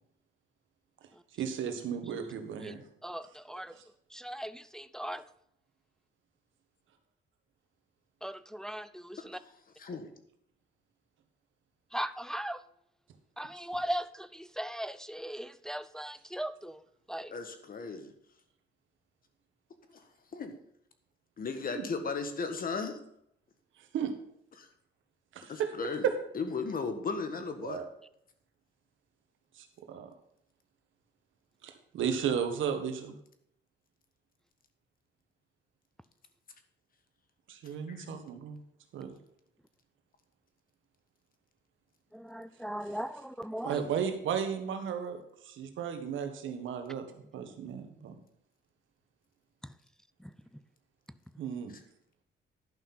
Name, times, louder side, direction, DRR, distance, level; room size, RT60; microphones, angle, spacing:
voice 1, 1.4-2.8 3.8-3.9 21.7-21.8 23.9-24.1 25.3-25.7 26.0-26.1 27.6-27.9 29.6-30.1 31.6-33.1 37.5-38.6 38.9-39.1 43.6-47.1 47.3-48.1 51.4-51.7, right 8 dB, 75° right, 7 dB, 1.5 m, -34 dB
voice 2, 3.0-3.7 4.1-5.2 8.2-9.4 11.9-12.6 13.4-16.8 17.1-17.3 42.1-43.8 49.6-49.7 50.2-50.3, right 1 dB, 5° left, 13 dB, 0.4 m, -38 dB
voice 3, 9.8-10.1 17.3-18.1 19.9-20.0 20.3-20.5 21.4-23.0 24.6-24.7 25.5-26.1 26.3-27.8 37.9-38.2, left 4 dB, 45° left, 7 dB, 1.6 m, -36 dB
11.0 x 5.8 x 5.7 m, 0.72 s
cardioid pair, 90°, 20 cm